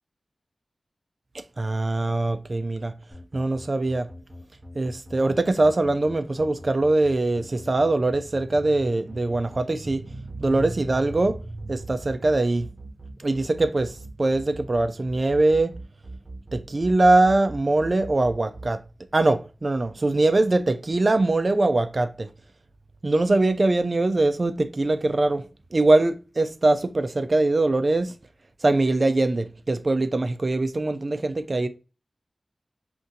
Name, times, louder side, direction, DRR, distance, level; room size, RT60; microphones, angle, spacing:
voice 1, 1.6-2.9 3.3-4.1 4.7-12.7 13.2-15.7 16.5-18.8 19.1-22.3 23.0-25.5 25.7-28.1 28.6-31.7, right 2 dB, 45° right, 0.3 m, -22 dB
sound 1, 3.1-18.7, right 1 dB, 10° right, 1.1 m, -41 dB
2.6 x 2.5 x 3.7 m
wide cardioid pair, 85°, 0 cm